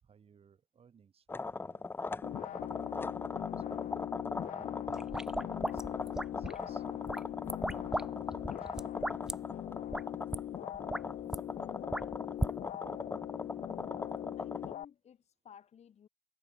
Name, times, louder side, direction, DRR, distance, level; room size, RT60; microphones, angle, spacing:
voice 1, 0.0-2.6 3.6-4.0 4.3-5.1 5.4-6.9 7.8-9.4, right 7 dB, 45° right, 7.9 m, -62 dB
sound 1, 1.3-14.7, left 3 dB, 15° left, 0.4 m, -40 dB
sound 2, 2.2-14.8, left 12 dB, 70° left, 2.0 m, -41 dB
sound 3, 4.9-6.6 7.1-8.1 8.3-9.3 9.9-10.0 10.3-10.4 10.7-11.4 11.9-12.5, right 1 dB, 5° right, 1.0 m, -36 dB
voice 2, 14.4-16.1, left 8 dB, 55° left, 4.8 m, -57 dB
cardioid pair, 100°, 14 cm